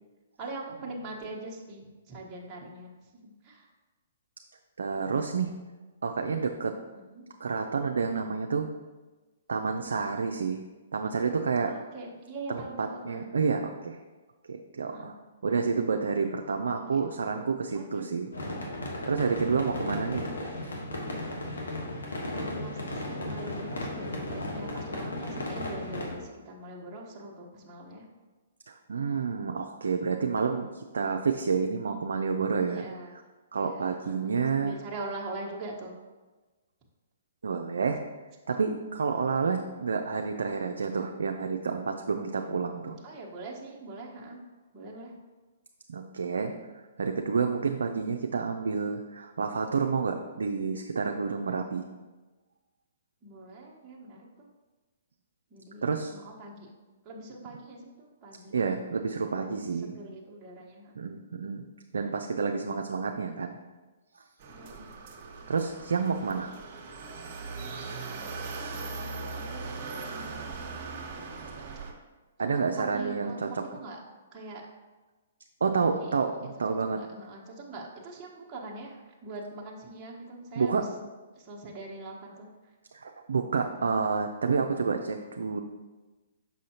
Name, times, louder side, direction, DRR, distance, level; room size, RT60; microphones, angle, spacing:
voice 1, 0.4-2.9 3.2-3.7 6.9-7.2 11.6-13.3 14.9-15.1 17.0-17.1 17.7-18.1 22.4-28.0 32.7-33.2 33.6-36.0 43.0-44.4 44.7-45.1 53.2-54.5 55.5-56.7 57.0-58.5 59.3-61.0 62.9-63.0 64.5-64.9 68.9-70.9 72.5-73.4 73.7-74.0 74.3-74.6 75.8-76.1 76.8-80.9 81.3-82.5 83.4-83.9, right 2 dB, 20° right, -5 dB, 1.2 m, -43 dB
voice 2, 4.8-5.5 6.0-6.8 7.4-8.7 9.5-10.6 10.9-11.7 12.5-14.0 14.5-15.2 15.4-18.3 19.1-20.3 28.7-32.9 33.5-34.8 37.4-38.0 38.5-43.0 45.9-46.5 47.0-51.8 55.8-56.1 58.5-60.0 61.0-63.6 65.5-66.5 72.4-73.6 75.6-77.0 80.6-80.9 82.9-85.6, right 5 dB, 80° right, 4 dB, 0.4 m, -29 dB
sound 1, 18.3-26.2, left 1 dB, 85° left, 1.3 m, -35 dB
sound 2, 64.4-71.9, right 4 dB, 45° right, 1.1 m, -39 dB
6.2 x 5.5 x 2.9 m, 1.2 s
hypercardioid pair, 130°, 0 cm